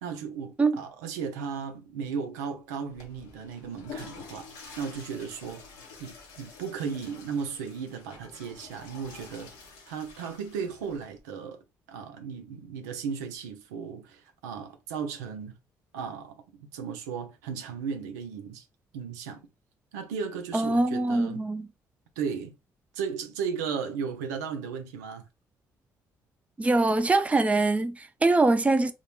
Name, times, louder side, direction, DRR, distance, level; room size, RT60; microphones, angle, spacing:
voice 1, 0.0-4.5 4.8-5.6 6.0-9.5 9.9-11.6 11.9-15.5 15.9-18.7 18.9-19.4 19.9-21.4 22.2-22.5 22.9-25.2, right 6 dB, 90° right, 0.4 m, -35 dB
Water / Toilet flush, 2.8-11.2, left 5 dB, 85° left, 0.7 m, -48 dB
voice 2, 20.5-21.7 26.6-28.9, right 2 dB, 15° right, 0.4 m, -23 dB
2.3 x 2.0 x 3.0 m
hypercardioid pair, 50°, 9 cm